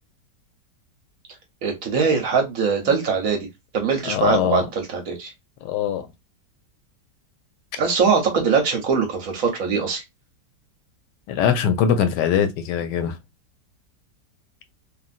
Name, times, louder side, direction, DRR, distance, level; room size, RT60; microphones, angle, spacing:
voice 1, 1.6-3.5 3.7-5.3 7.8-10.0, right 5 dB, 60° right, 1.0 m, -22 dB
voice 2, 4.0-4.7 5.6-6.1 11.3-13.2, left 8 dB, 80° left, 1.2 m, -22 dB
3.1 x 2.5 x 2.4 m
omnidirectional pair, 1.9 m